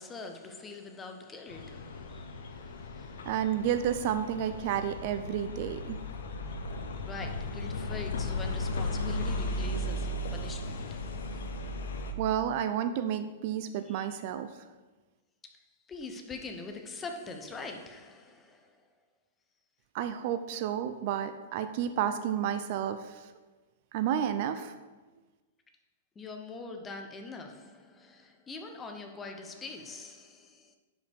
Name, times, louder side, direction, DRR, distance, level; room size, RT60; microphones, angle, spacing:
voice 1, 0.0-3.5 6.0-11.4 13.8-14.2 15.4-18.9 26.2-30.8, left 3 dB, 10° left, 0.7 m, -44 dB
sound 1, 1.5-12.1, left 2 dB, 80° left, 0.9 m, -36 dB
voice 2, 3.3-6.0 12.2-14.5 19.9-23.0 23.9-24.7, right 9 dB, 40° right, 0.4 m, -31 dB
11.0 x 5.2 x 3.5 m
hypercardioid pair, 165°, 0 cm